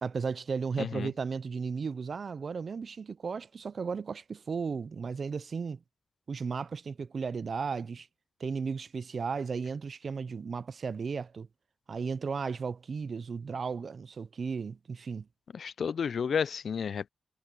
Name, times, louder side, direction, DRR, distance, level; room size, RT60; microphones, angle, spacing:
voice 1, 0.0-5.8 6.3-8.1 8.4-11.5 11.9-15.3, right 5 dB, 60° right, 0.4 m, -35 dB
voice 2, 0.8-1.1 15.5-17.1, left 6 dB, 70° left, 0.3 m, -31 dB
cardioid pair, 65°, 0 cm